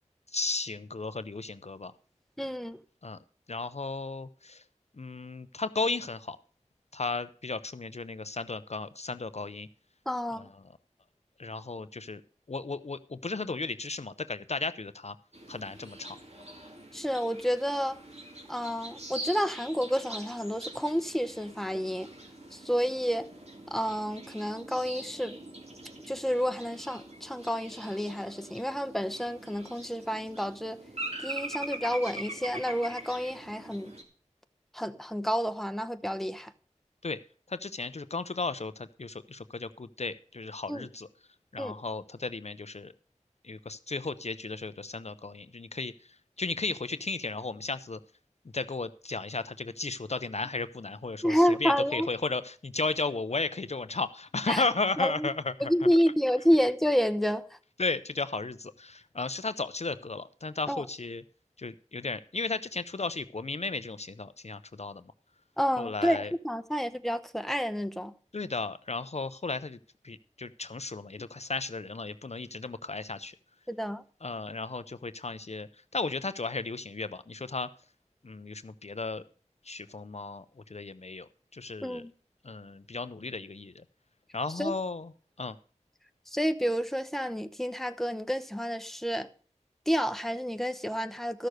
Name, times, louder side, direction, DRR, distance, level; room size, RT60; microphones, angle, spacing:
voice 1, 0.3-1.9 3.0-3.2 3.5-4.6 5.0-6.4 6.9-9.7 10.4-10.5 11.4-12.2 12.5-15.2 15.5-16.2 37.0-37.2 37.5-41.1 41.5-42.9 43.4-48.0 48.5-55.7 57.8-61.2 61.6-65.1 65.8-66.3 68.3-69.8 70.0-73.3 74.2-75.7 75.9-77.7 78.2-79.2 79.6-82.0 82.4-83.8 84.3-85.1 85.4-85.6, left 3 dB, 60° left, 0.5 m, -34 dB
voice 2, 2.4-2.8 10.1-10.5 16.9-18.0 18.5-22.1 22.5-23.3 23.7-25.4 26.1-30.8 31.2-33.9 34.7-36.5 40.7-40.9 41.6-41.7 51.2-52.1 54.5-54.6 55.0-55.3 55.6-57.6 60.7-60.8 65.6-68.1 73.7-74.0 81.8-82.1 84.6-84.8 86.3-89.3 89.9-91.5, equal, ahead, 0.8 m, -29 dB
sound 1, 15.3-34.0, right 1 dB, 60° right, 2.4 m, -43 dB
13.0 x 6.6 x 6.4 m
wide cardioid pair, 45°, 12 cm